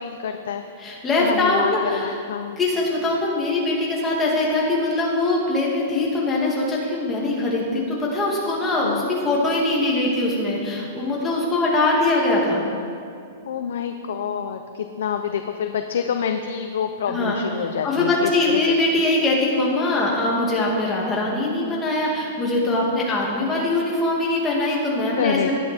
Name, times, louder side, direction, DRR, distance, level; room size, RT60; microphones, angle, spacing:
voice 1, 0.0-0.6 1.2-2.6 8.8-9.0 13.5-18.6 25.2-25.5, left 7 dB, 75° left, 6 dB, 0.9 m, -27 dB
voice 2, 0.8-2.2 2.6-12.6 17.1-25.5, left 2 dB, 10° left, -4 dB, 2.6 m, -22 dB
18.0 x 11.5 x 4.6 m, 2.4 s
supercardioid pair, 170°, 0 cm